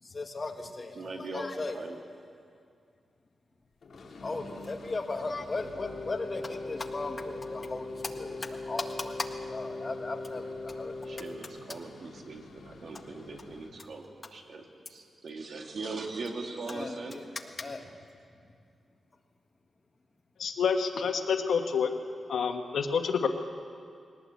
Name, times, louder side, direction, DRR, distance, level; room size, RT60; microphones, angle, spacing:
voice 1, 0.0-1.8 4.2-11.2 16.7-17.2 17.6-18.0, left 3 dB, 30° left, 4 dB, 1.7 m, -37 dB
voice 2, 0.9-1.4 1.7-2.0 11.0-17.2, right 3 dB, 60° right, 3 dB, 2.3 m, -40 dB
sound 1, 3.8-13.8, left 2 dB, 60° left, 2.6 m, -49 dB
Wind instrument woodwind instrument, 5.7-11.4, left 2 dB, ahead, 4.5 m, -40 dB
voice 3, 20.4-21.9 22.3-23.3, left 6 dB, 90° left, 5 dB, 1.4 m, -28 dB
21.0 x 18.5 x 8.3 m, 2.3 s
wide cardioid pair, 115°, 0 cm